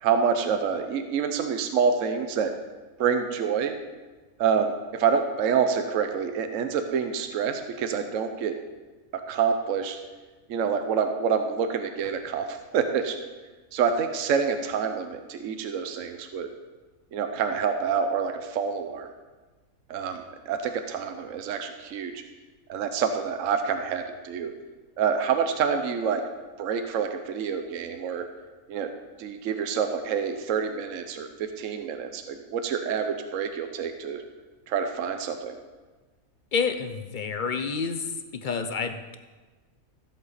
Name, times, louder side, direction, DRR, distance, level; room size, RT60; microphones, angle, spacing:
voice 1, 0.0-2.5 3.0-3.7 4.4-8.5 9.3-10.0 10.5-13.2 13.7-16.5 17.1-19.1 19.9-22.2 22.7-24.5 25.0-26.2 26.6-28.2 28.7-28.9 29.2-31.3 31.6-34.2 34.7-35.5, right 6 dB, 70° right, 7 dB, 1.1 m, -27 dB
voice 2, 36.5-38.0 38.4-39.2, left 5 dB, 45° left, 9 dB, 0.7 m, -28 dB
14.5 x 7.8 x 4.1 m, 1.3 s
omnidirectional pair, 1.4 m